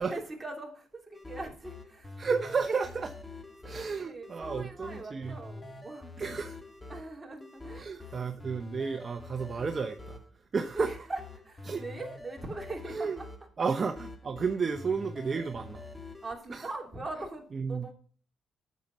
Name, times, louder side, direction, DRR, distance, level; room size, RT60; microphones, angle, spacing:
voice 1, 0.0-2.9 3.8-6.2 6.9-8.2 10.7-13.3 16.2-17.9, right 2 dB, 15° right, 3.1 m, -41 dB
sound 1, 1.1-16.3, left 2 dB, 15° left, 1.4 m, -46 dB
voice 2, 2.2-3.1 3.6-5.4 6.2-6.6 7.8-10.9 11.6-11.8 12.9-13.2 13.6-15.8 16.5-16.7 17.5-17.9, right 5 dB, 40° right, 0.7 m, -32 dB
9.4 x 7.4 x 5.4 m
cardioid pair, 90°, 0 cm